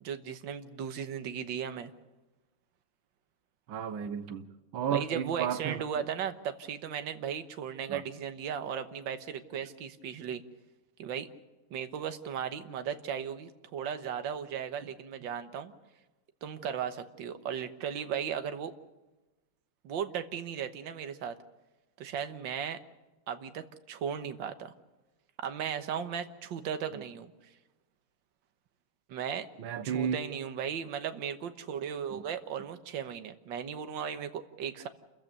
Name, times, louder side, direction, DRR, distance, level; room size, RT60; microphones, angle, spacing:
voice 1, 0.0-1.9 4.9-10.4 11.0-11.3 11.7-15.7 16.4-18.7 19.8-21.3 22.0-22.8 23.3-24.7 25.4-27.3 29.1-29.5 29.8-34.9, right 8 dB, 70° right, 8 dB, 1.9 m, -36 dB
voice 2, 3.7-5.8 7.9-8.0 26.9-27.0 29.6-30.2 32.1-32.2, right 8 dB, 85° right, 10 dB, 1.9 m, -33 dB
28.5 x 15.0 x 6.7 m, 1.1 s
omnidirectional pair, 2.1 m